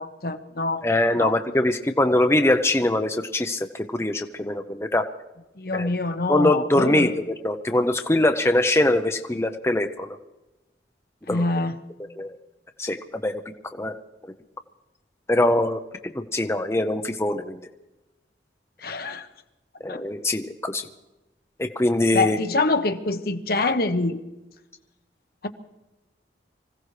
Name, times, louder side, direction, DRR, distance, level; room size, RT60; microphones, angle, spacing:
voice 1, 0.0-0.8 1.1-1.4 5.6-7.1 11.3-11.7 18.8-19.3 19.9-20.0 22.1-24.2 25.4-25.5, left 3 dB, 55° left, 8 dB, 1.0 m, -25 dB
voice 2, 0.8-5.0 5.7-5.9 6.3-7.1 7.4-10.2 11.3-11.4 12.2-12.3 12.8-13.3 13.8-13.9 15.3-17.6 19.8-20.9 21.6-22.4, left 1 dB, 15° left, 6 dB, 0.6 m, -22 dB
25.0 x 16.0 x 3.3 m, 1.0 s
head